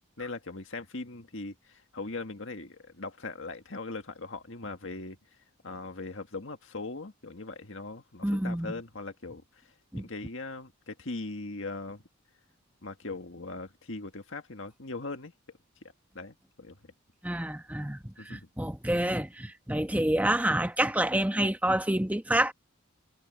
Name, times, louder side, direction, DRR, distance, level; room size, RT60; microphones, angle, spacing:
voice 1, 0.2-5.2 5.6-12.0 12.8-15.3 16.1-16.9 18.2-18.5, left 3 dB, 60° left, 1.9 m, -40 dB
voice 2, 8.2-8.7 9.9-10.0 17.2-22.5, right 1 dB, 5° right, 1.2 m, -28 dB
head